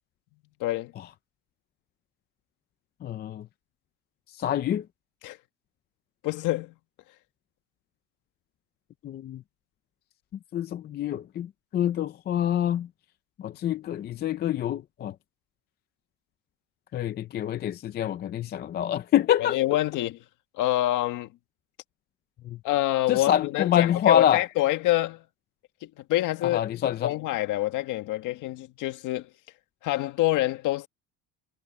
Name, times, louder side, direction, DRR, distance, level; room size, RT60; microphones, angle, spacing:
voice 1, 0.6-0.9 5.2-5.4 6.2-6.7 19.4-20.2 20.6-21.3 22.6-25.2 25.8-26.6 27.0-29.3 29.8-30.9, left 15 dB, 60° left, 1.9 m, -26 dB
voice 2, 3.0-3.5 4.4-4.8 9.0-9.4 10.5-12.9 13.4-15.1 16.9-19.6 22.4-22.6 23.1-24.4 26.5-27.1, left 10 dB, 30° left, 0.5 m, -26 dB
cardioid pair, 170°, 36 cm